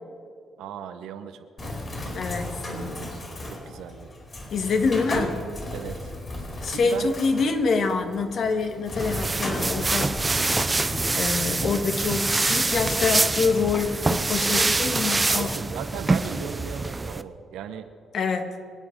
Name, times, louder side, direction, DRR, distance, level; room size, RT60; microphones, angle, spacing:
voice 1, 0.6-2.3 3.4-4.1 5.7-6.1 6.7-7.1 8.5-8.6 14.4-14.8 15.1-17.9, right 8 dB, 85° right, 8 dB, 1.1 m, -38 dB
Bird, 1.6-13.1, left 1 dB, 35° left, 4.6 m, -35 dB
voice 2, 2.1-2.6 4.5-5.4 6.6-10.2 11.1-15.5 18.1-18.6, left 4 dB, 60° left, 6 dB, 1.7 m, -26 dB
sound 1, 9.0-17.2, right 3 dB, 20° right, 0.6 m, -25 dB
25.0 x 8.7 x 5.3 m, 2.1 s
cardioid pair, 90°, 0 cm